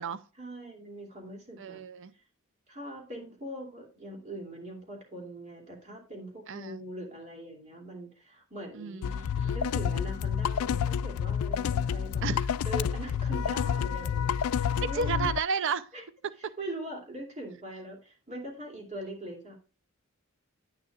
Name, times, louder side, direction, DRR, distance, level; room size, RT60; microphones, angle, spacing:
voice 1, 0.4-1.8 2.7-9.1 9.4-12.2 12.6-15.3 15.9-16.0 16.4-19.6, right 1 dB, 35° right, 2.7 m, -42 dB
voice 2, 1.6-2.1 6.5-6.8 8.8-9.5 12.2-12.5 14.9-15.9 16.4-16.5, right 5 dB, 60° right, 0.5 m, -32 dB
sound 1, 9.0-15.4, left 7 dB, 90° left, 0.3 m, -29 dB
9.8 x 9.4 x 2.4 m
head